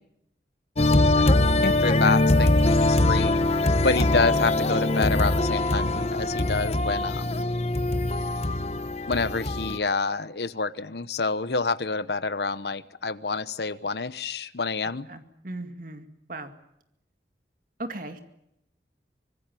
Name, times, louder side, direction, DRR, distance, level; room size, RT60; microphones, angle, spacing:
sound 1, 0.8-9.8, left 2 dB, 35° left, 1.1 m, -22 dB
voice 1, 1.6-7.5 9.1-15.1, left 4 dB, 65° left, 15 dB, 1.0 m, -28 dB
voice 2, 14.8-16.5 17.8-18.2, right 2 dB, 50° right, 7 dB, 2.3 m, -38 dB
25.0 x 20.5 x 9.2 m, 0.81 s
head